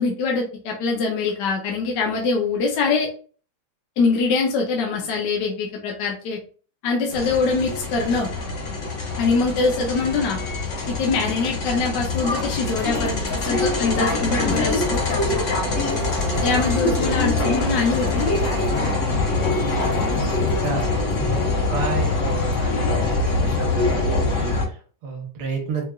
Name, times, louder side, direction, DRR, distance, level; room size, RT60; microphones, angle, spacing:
voice 1, 0.0-3.1 4.0-6.4 6.8-8.3 9.2-10.4 10.9-15.0 16.4-18.3, left 4 dB, 70° left, 0 dB, 1.3 m, -23 dB
sound 1, 7.1-24.6, left 3 dB, 50° left, 1.0 m, -24 dB
sound 2, 12.1-13.5 13.9-15.3 15.7-17.1 17.6-19.0 19.3-21.2, left 3 dB, 25° left, 0.5 m, -39 dB
sound 3, 13.6-18.9, right 1 dB, 45° right, 0.9 m, -33 dB
voice 2, 15.6-16.0 20.6-21.4 21.7-25.9, right 4 dB, 65° right, 1 dB, 1.5 m, -31 dB
4.7 x 2.5 x 2.2 m, 0.40 s
omnidirectional pair, 2.0 m